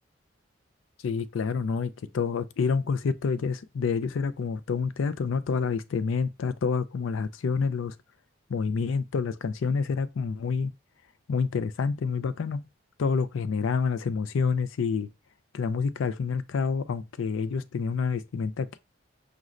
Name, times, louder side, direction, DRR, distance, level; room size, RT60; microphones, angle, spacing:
voice 1, 1.0-7.9 8.5-10.7 11.3-12.6 13.0-15.1 15.5-18.8, left 5 dB, 80° left, 0.4 m, -28 dB
5.1 x 3.1 x 2.5 m
head